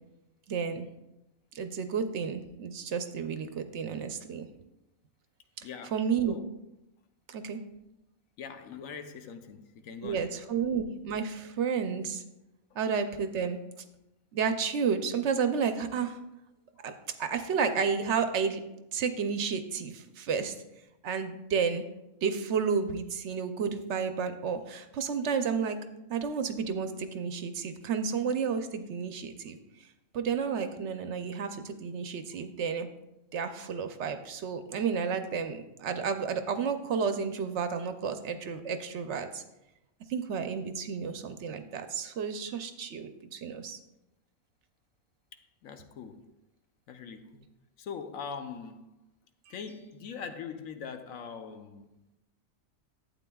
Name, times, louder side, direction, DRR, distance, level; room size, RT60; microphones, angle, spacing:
voice 1, 0.5-0.9 1.5-4.5 5.9-6.4 7.3-7.6 10.0-12.2 12.8-13.6 14.3-16.2 16.8-16.9 17.2-18.6 18.9-20.5 21.0-21.8 22.2-25.8 26.1-29.6 30.1-32.9 33.3-39.4 40.1-43.8, right 6 dB, 65° right, 0.8 m, -31 dB
voice 2, 5.6-6.5 8.4-10.3 45.6-46.2 46.9-47.5 47.8-49.0 49.5-52.0, left 6 dB, 80° left, 1.1 m, -42 dB
12.0 x 8.3 x 2.3 m
omnidirectional pair, 1.4 m